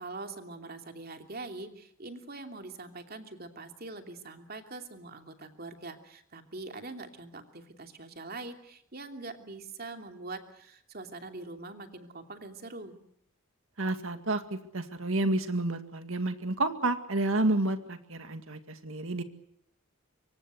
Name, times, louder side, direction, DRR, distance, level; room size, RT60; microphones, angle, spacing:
voice 1, 0.0-13.0, right 3 dB, 45° right, 5 dB, 2.9 m, -43 dB
voice 2, 13.8-19.2, right 2 dB, 70° right, 8 dB, 2.1 m, -30 dB
25.0 x 24.5 x 8.0 m, 0.71 s
head